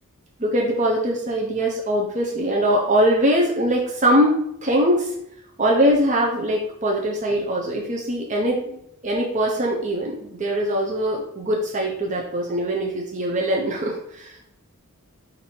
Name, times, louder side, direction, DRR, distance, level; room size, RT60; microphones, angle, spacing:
voice 1, 0.4-4.3 4.6-5.1 5.6-14.4, equal, 35° right, -2 dB, 0.6 m, -22 dB
4.5 x 2.6 x 4.3 m, 0.73 s
head